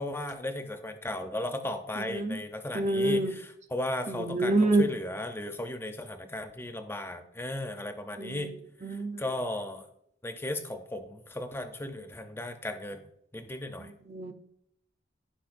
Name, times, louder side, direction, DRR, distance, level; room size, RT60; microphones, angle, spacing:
voice 1, 0.0-8.5 8.9-9.9 10.2-13.9, left 1 dB, 10° left, 6 dB, 0.7 m, -36 dB
voice 2, 2.0-2.4 2.7-3.4 4.1-4.9 8.2-9.2 14.1-14.3, right 2 dB, 40° right, 7 dB, 0.8 m, -27 dB
14.5 x 5.2 x 2.6 m, 0.75 s
head